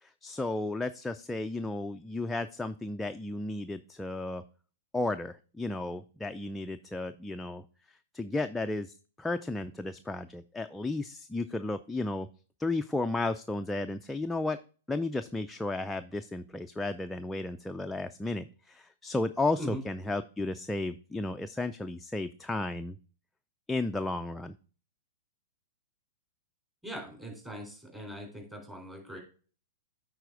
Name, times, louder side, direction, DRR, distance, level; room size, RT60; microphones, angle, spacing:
voice 1, 0.0-4.4 4.9-7.6 8.1-12.3 12.6-14.6 14.9-23.0 23.7-24.5, left 2 dB, 5° left, 7 dB, 0.3 m, -33 dB
voice 2, 26.8-29.2, equal, 10° right, 0 dB, 3.8 m, -41 dB
9.1 x 4.1 x 4.7 m, 0.39 s
hypercardioid pair, 130°, 0 cm